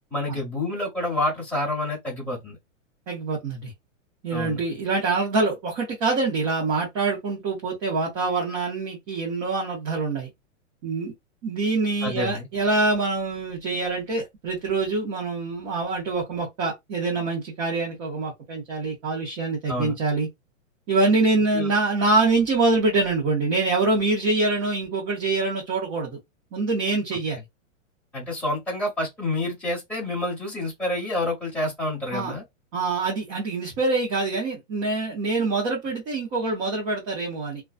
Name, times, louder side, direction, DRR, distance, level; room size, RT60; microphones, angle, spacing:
voice 1, 0.1-2.6 4.3-4.6 12.0-12.5 19.7-20.0 21.5-21.7 28.1-32.4, left 1 dB, 5° left, 1.1 m, -28 dB
voice 2, 3.1-3.7 4.2-10.3 10.8-11.1 11.4-20.3 20.9-26.2 26.5-27.4 32.1-32.3 32.7-37.6, right 3 dB, 15° right, 0.5 m, -25 dB
2.4 x 2.2 x 2.3 m
hypercardioid pair, 160°, 39 cm